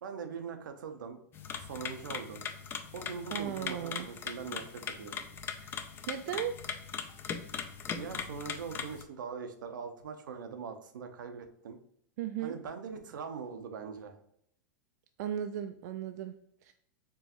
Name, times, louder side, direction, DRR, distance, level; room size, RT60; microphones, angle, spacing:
voice 1, 0.0-1.2 1.6-2.4 2.9-5.3 8.0-11.8 12.4-14.2, right 6 dB, 85° right, 6 dB, 0.7 m, -42 dB
sound 1, 1.3-9.0, left 7 dB, 20° left, 0.4 m, -40 dB
voice 2, 3.3-4.1 5.5-5.7 6.1-6.5 12.2-12.6 15.2-16.7, right 10 dB, 60° right, 7 dB, 0.4 m, -36 dB
4.6 x 3.1 x 2.9 m, 0.73 s
hypercardioid pair, 135°, 10 cm